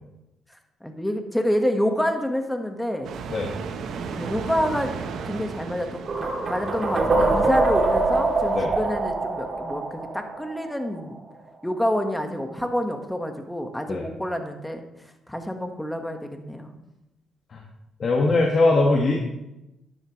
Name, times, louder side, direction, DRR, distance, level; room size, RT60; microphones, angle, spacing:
voice 1, 0.8-3.1 4.1-4.9 5.2-9.8 10.1-11.2 11.6-14.8 15.3-16.8, equal, 5° left, 5 dB, 1.5 m, -27 dB
sound 1, 3.0-8.7, right 5 dB, 70° right, 1.1 m, -36 dB
sound 2, 6.1-11.0, right 3 dB, 45° right, 2.9 m, -24 dB
voice 2, 6.6-7.5 8.6-8.7 13.9-14.1 17.5-17.6 18.0-19.2, left 2 dB, 50° left, -1 dB, 1.7 m, -22 dB
12.0 x 10.5 x 3.2 m, 0.92 s
cardioid pair, 90°, 0 cm